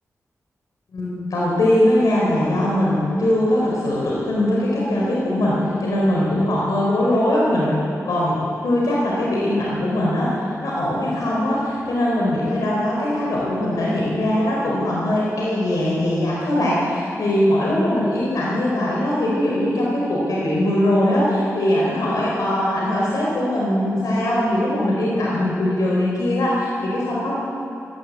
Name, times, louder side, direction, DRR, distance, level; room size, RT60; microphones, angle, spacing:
voice 1, 0.9-27.4, left 1 dB, 85° left, -5 dB, 4.5 m, -21 dB
19.0 x 17.5 x 8.3 m, 2.7 s
wide cardioid pair, 155°, 6 cm